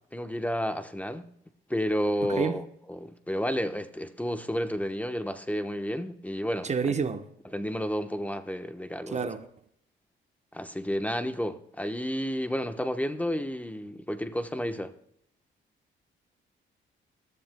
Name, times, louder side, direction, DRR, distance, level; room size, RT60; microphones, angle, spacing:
voice 1, 0.1-1.3 1.7-2.6 2.9-6.7 7.5-9.3 10.5-14.9, equal, 5° left, 1.0 m, -31 dB
voice 2, 6.6-7.3 9.1-9.5, right 5 dB, 35° right, 1.0 m, -29 dB
21.0 x 13.5 x 2.2 m
cardioid pair, 90°, 20 cm